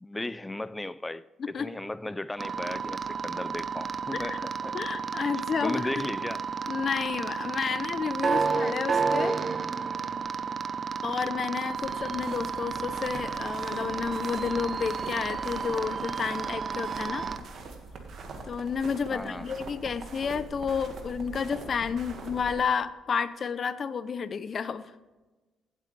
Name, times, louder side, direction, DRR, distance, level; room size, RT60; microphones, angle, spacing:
voice 1, 0.0-4.7 5.6-6.4 19.1-19.5, left 1 dB, 15° left, 0.3 m, -36 dB
voice 2, 1.4-1.7 4.1-4.4 4.7-5.9 6.7-9.4 11.0-17.3 18.5-24.9, left 6 dB, 50° left, 0.7 m, -31 dB
sound 1, 2.4-17.4, right 5 dB, 40° right, 0.7 m, -32 dB
sound 2, 11.7-22.6, right 3 dB, 65° right, 1.9 m, -43 dB
16.5 x 8.3 x 3.4 m
cardioid pair, 90°, 0 cm